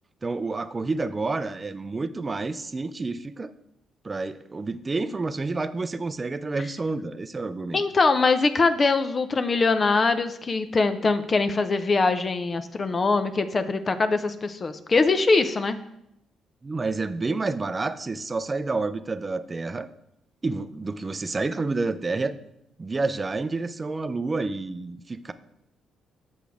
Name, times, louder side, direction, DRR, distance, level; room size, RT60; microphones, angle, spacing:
voice 1, 0.2-3.5 4.0-7.8 16.6-19.9 20.4-22.4 22.8-25.3, right 3 dB, 25° right, 13 dB, 0.4 m, -29 dB
voice 2, 7.7-15.8, left 3 dB, 35° left, 9 dB, 0.5 m, -22 dB
8.0 x 6.2 x 3.5 m, 0.78 s
cardioid pair, 90°, 0 cm